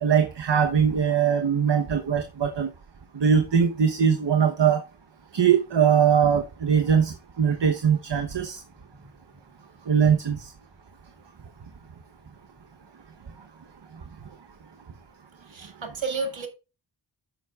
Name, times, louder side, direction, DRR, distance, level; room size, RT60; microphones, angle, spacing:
voice 1, 0.0-2.7 3.1-4.8 5.3-8.6 9.9-10.4, right 7 dB, 65° right, 1.1 m, -21 dB
voice 2, 15.5-16.5, right 4 dB, 85° right, 2.3 m, -31 dB
10.5 x 8.1 x 2.4 m
cardioid pair, 50°, 45 cm